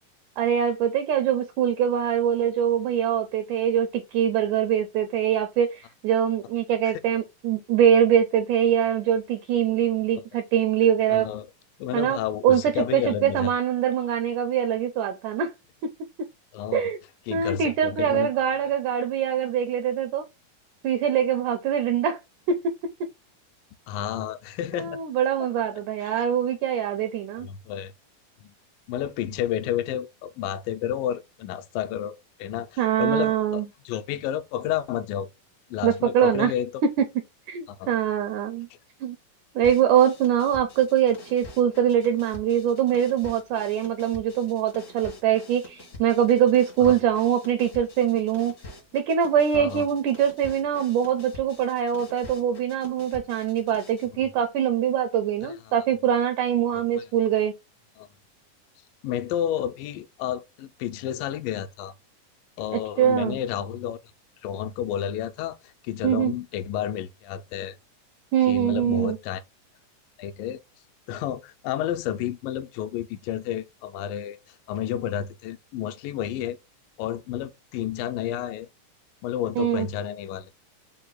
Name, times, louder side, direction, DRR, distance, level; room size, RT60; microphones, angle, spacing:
voice 1, 0.4-11.3 11.9-12.2 12.4-15.5 15.8-15.9 16.7-17.0 17.3-20.3 20.8-22.2 22.5-22.7 24.7-27.5 32.8-33.7 35.8-36.5 36.8-37.1 37.5-38.7 39.0-39.2 39.6-48.5 48.9-57.5 62.7-63.4 66.0-66.3 68.3-69.2 79.6-79.9, right 9 dB, 80° right, 1.8 m, -23 dB
voice 2, 11.1-11.5 11.8-13.5 16.5-16.9 17.3-18.3 23.9-25.0 26.0-26.3 27.4-27.9 28.4-28.5 28.9-32.1 32.4-35.3 35.7-36.8 37.7-37.9 46.8-47.0 49.5-49.9 55.4-55.5 56.9-57.1 58.0-58.1 59.0-61.9 62.6-64.0 64.4-65.6 65.8-67.8 68.5-69.4 70.2-70.6 71.1-74.4 74.7-76.6 77.0-78.7 79.2-80.5, left 10 dB, 80° left, 2.2 m, -30 dB
sound 1, 39.6-54.1, left 1 dB, 60° left, 0.9 m, -46 dB
5.6 x 2.2 x 3.8 m
omnidirectional pair, 4.1 m